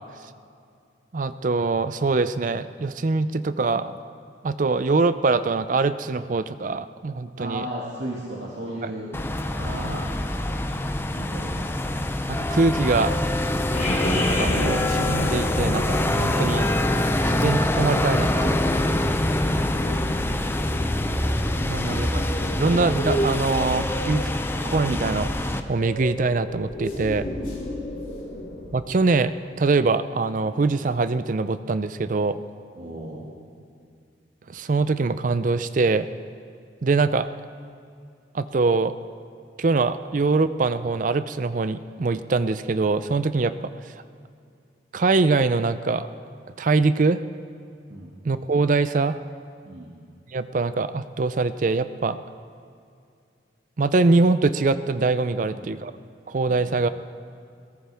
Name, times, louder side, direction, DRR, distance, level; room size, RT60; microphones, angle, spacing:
voice 1, 1.1-4.0 4.4-7.7 8.8-8.9 12.3-13.1 14.1-16.7 17.2-18.6 21.7-22.2 22.6-24.3 24.6-27.3 28.7-32.4 34.5-36.1 36.8-37.3 38.3-38.9 39.6-43.7 44.9-46.1 46.6-47.2 48.2-49.2 50.3-52.2 53.8-55.9 56.3-56.9, right 3 dB, 45° right, 13 dB, 0.4 m, -23 dB
voice 2, 7.4-10.0 11.1-11.8 21.6-22.2 32.8-33.3 47.9-48.1 49.6-49.9 55.4-55.7, right 1 dB, 80° right, -5 dB, 2.0 m, -36 dB
sound 1, 9.1-25.6, left 1 dB, 15° left, 0.5 m, -25 dB
sound 2, 13.7-28.7, left 1 dB, 45° left, 3.6 m, -32 dB
22.0 x 17.0 x 3.5 m, 2.4 s
head